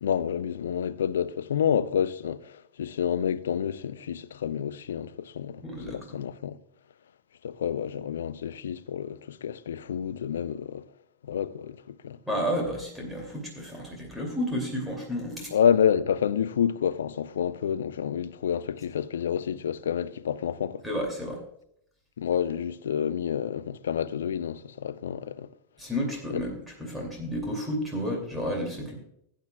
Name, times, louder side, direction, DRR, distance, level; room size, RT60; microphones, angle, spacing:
voice 1, 0.0-5.6 5.9-6.6 7.4-10.8 11.2-12.2 15.5-20.8 22.2-25.5, left 8 dB, 65° left, 0.4 m, -28 dB
voice 2, 5.6-6.2 12.3-15.5 20.8-21.4 25.8-28.9, equal, 5° right, 2.6 m, -31 dB
17.0 x 8.9 x 2.3 m
figure-of-eight pair, 90°, 0 cm